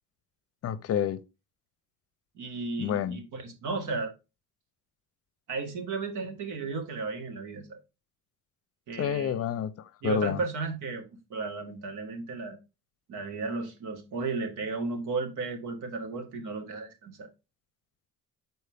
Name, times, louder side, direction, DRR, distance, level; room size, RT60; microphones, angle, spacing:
voice 1, 0.6-1.2 2.8-3.2 9.0-10.4, left 9 dB, 50° left, 0.6 m, -29 dB
voice 2, 2.4-4.1 5.5-7.8 8.9-9.4 10.0-11.0 11.3-12.6 13.1-17.3, right 4 dB, 75° right, 1.7 m, -34 dB
6.7 x 4.4 x 3.4 m
cardioid pair, 150°, 31 cm